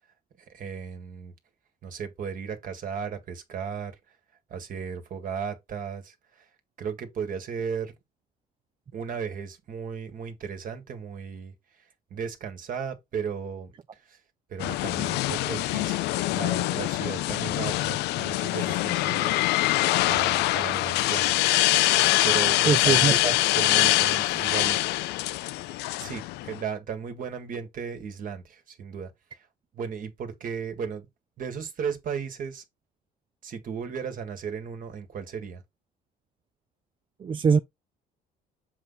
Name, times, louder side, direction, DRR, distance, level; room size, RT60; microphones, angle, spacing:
voice 1, 0.5-1.3 1.8-4.0 4.5-6.5 6.8-7.9 8.9-11.5 12.1-14.2 14.5-19.4 20.1-21.4 22.2-23.2 23.5-24.8 26.0-29.4 29.7-31.1 31.4-32.6 33.4-35.6, right 6 dB, 55° right, 1.8 m, -35 dB
sound 1, 14.6-26.6, left 18 dB, 80° left, 0.4 m, -24 dB
voice 2, 22.7-23.3 37.2-37.6, right 6 dB, 30° right, 0.4 m, -22 dB
7.3 x 4.0 x 4.0 m
cardioid pair, 110°, 17 cm